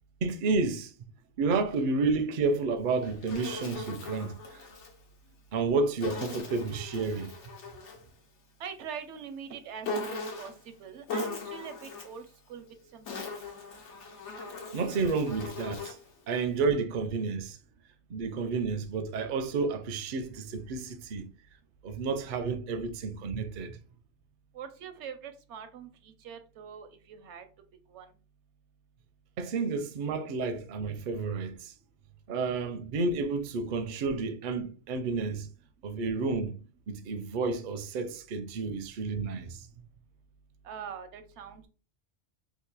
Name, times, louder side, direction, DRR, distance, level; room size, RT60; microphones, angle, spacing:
voice 1, 0.2-0.9 1.4-4.6 5.5-7.3 14.7-16.0 16.3-17.6 18.1-21.3 21.8-23.8 29.4-31.7 32.3-35.5 35.8-36.6 36.9-39.7, right 4 dB, 60° right, 0.6 m, -30 dB
Insect, 2.8-4.9 6.0-8.1 9.8-10.6 11.1-12.2 12.8-16.1, left 3 dB, 80° left, 1.1 m, -39 dB
voice 2, 8.6-12.6 12.9-13.3 24.5-27.5 27.9-28.1 40.6-41.7, right 7 dB, 80° right, 0.9 m, -43 dB
2.9 x 2.4 x 3.8 m
omnidirectional pair, 1.2 m